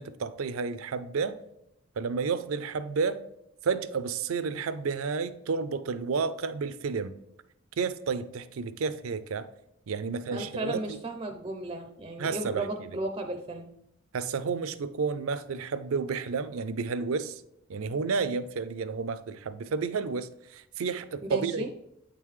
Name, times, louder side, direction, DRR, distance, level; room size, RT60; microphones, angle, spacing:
voice 1, 0.0-1.4 2.0-3.2 3.6-7.1 7.8-9.5 9.9-11.0 12.2-13.0 14.1-17.4 17.7-21.7, right 5 dB, 80° right, 0.4 m, -31 dB
voice 2, 10.3-13.7 21.3-21.7, right 1 dB, 25° right, 0.4 m, -34 dB
8.5 x 3.8 x 3.1 m
head